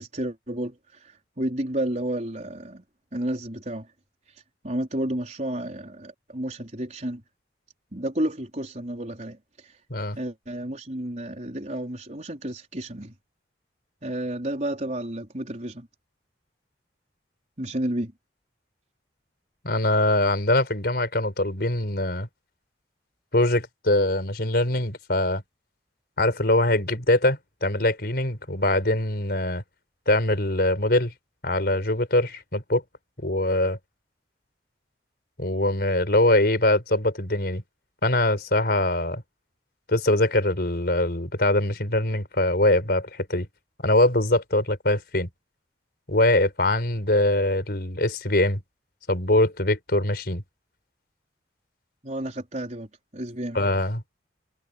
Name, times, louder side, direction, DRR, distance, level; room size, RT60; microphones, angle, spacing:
voice 1, 0.0-2.8 3.1-3.9 4.6-7.2 7.9-9.8 10.1-13.1 14.0-15.9 17.6-18.1 52.0-53.6, right 1 dB, 40° right, 4.6 m, -31 dB
voice 2, 19.6-22.3 23.3-25.4 26.2-29.6 30.1-31.1 31.4-32.8 33.2-33.8 35.4-37.6 38.0-39.2 39.9-43.5 43.8-45.3 46.1-48.6 49.1-50.4 53.5-54.0, left 1 dB, 60° left, 5.0 m, -23 dB
head